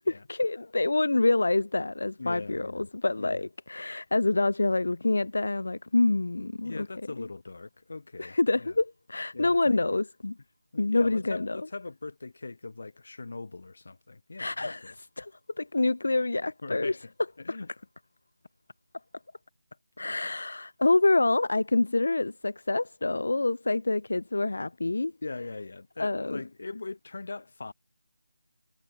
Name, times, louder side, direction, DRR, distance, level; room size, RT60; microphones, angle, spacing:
voice 1, 0.0-6.9 7.2-7.3 8.2-10.4 10.8-11.6 14.4-15.3 15.6-17.0 20.0-25.1 26.0-26.4, left 2 dB, 65° left, 0.3 m, -27 dB
voice 2, 2.2-2.9 3.2-3.5 6.6-8.7 9.3-9.8 10.7-14.9 16.6-17.1 17.4-17.7 25.2-27.7, left 3 dB, 45° left, 0.8 m, -40 dB
figure-of-eight pair, 180°, 0 cm